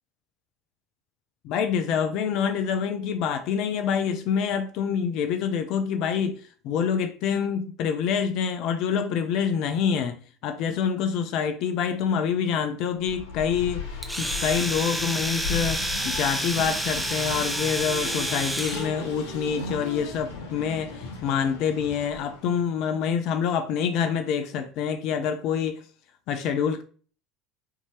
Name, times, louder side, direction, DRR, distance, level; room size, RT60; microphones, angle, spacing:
voice 1, 1.4-25.8 26.3-26.8, left 7 dB, 60° left, 0.4 m, -26 dB
Race car auto racing, 12.9-22.6, left 4 dB, 80° left, 1.0 m, -37 dB
Domestic sounds home sounds, 14.0-18.9, right 1 dB, ahead, 0.7 m, -29 dB
4.6 x 2.8 x 2.9 m
hypercardioid pair, 75°, 0 cm